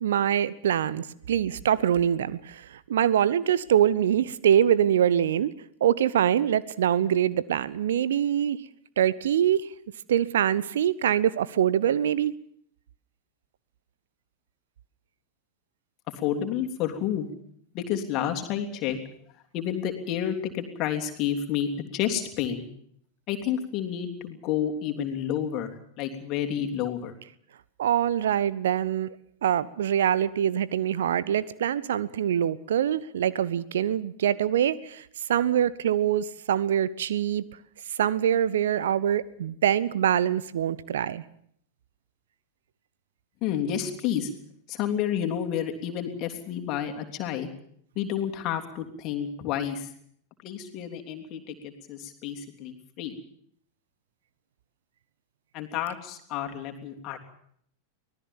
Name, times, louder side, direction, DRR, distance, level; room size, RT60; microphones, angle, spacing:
voice 1, 0.0-5.5 5.8-8.6 9.0-9.7 10.1-12.3 27.8-29.1 29.4-37.4 38.0-41.2, right 10 dB, 60° right, 19 dB, 0.9 m, -24 dB
voice 2, 16.2-17.3 17.7-19.0 19.5-22.6 23.3-27.1 43.4-44.3 44.7-47.5 47.9-49.9 50.4-53.1 55.5-57.2, left 9 dB, 40° left, 4 dB, 3.3 m, -30 dB
24.5 x 18.5 x 7.2 m, 0.65 s
figure-of-eight pair, 90°, 0 cm